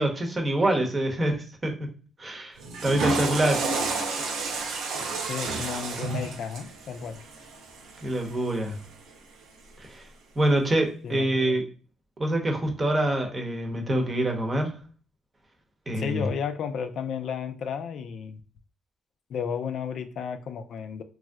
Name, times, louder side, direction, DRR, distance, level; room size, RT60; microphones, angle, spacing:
voice 1, 0.0-1.9 2.2-3.7 8.0-8.8 9.8-10.0 10.4-11.6 12.2-14.7 15.9-16.3, right 1 dB, 30° right, 0.8 m, -26 dB
Water / Toilet flush, 2.6-8.8, right 3 dB, 85° right, 0.6 m, -31 dB
voice 2, 5.0-7.2 11.0-11.6 16.0-18.4 19.3-21.0, left 7 dB, 70° left, 0.3 m, -33 dB
3.1 x 2.6 x 2.2 m
cardioid pair, 90°, 0 cm